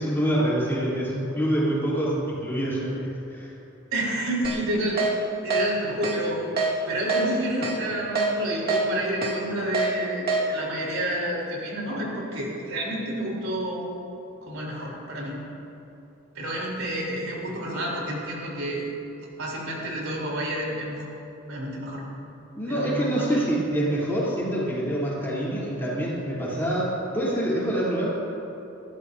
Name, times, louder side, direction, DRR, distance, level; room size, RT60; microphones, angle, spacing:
voice 1, 0.0-3.5 22.5-28.1, right 1 dB, 10° left, -8 dB, 3.4 m, -26 dB
voice 2, 3.9-5.0 5.4-6.4 6.9-13.9 14.4-15.4 16.3-18.8 19.4-21.1 21.5-22.0 22.7-23.5, right 1 dB, 80° right, -4 dB, 3.8 m, -29 dB
Keyboard (musical), 4.4-4.6 5.0-5.1 5.5-5.6 6.0-6.2 6.6-6.7 7.1-7.2 7.6-7.8 8.2-8.3 8.7-8.8 9.2-9.3 9.7-9.9 10.3-10.4, right 4 dB, 45° right, 1.9 m, -24 dB
20.5 x 15.0 x 2.8 m, 2.9 s
head